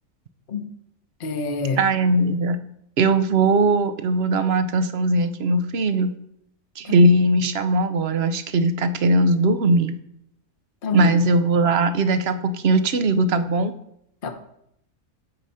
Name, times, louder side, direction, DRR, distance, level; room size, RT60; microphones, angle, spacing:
voice 1, 1.2-1.8 6.8-7.0 10.8-11.1 14.2-14.3, left 4 dB, 40° left, 6 dB, 1.1 m, -26 dB
voice 2, 1.8-2.6 3.0-6.1 6.8-9.9 10.9-13.7, right 2 dB, 50° right, 10 dB, 0.8 m, -19 dB
13.5 x 4.9 x 5.6 m, 0.75 s
omnidirectional pair, 1.6 m